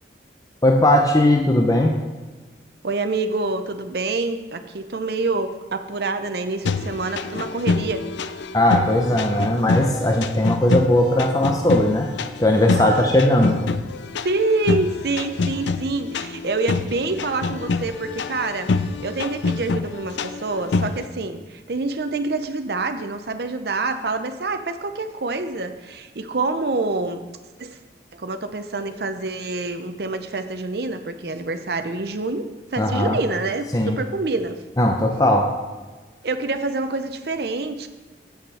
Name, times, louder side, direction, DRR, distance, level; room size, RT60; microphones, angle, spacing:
voice 1, 0.6-2.0 8.5-12.1 12.4-13.6 32.8-33.2 33.7-34.0 34.8-35.5, left 1 dB, 20° left, 2 dB, 0.6 m, -18 dB
voice 2, 2.8-8.1 12.7-13.2 14.2-18.7 19.0-27.2 27.6-27.8 28.1-34.6 36.2-37.9, right 3 dB, 60° right, 8 dB, 0.6 m, -26 dB
sound 1, 6.6-21.1, left 3 dB, 75° left, 0.4 m, -26 dB
8.1 x 6.6 x 5.6 m, 1.3 s
head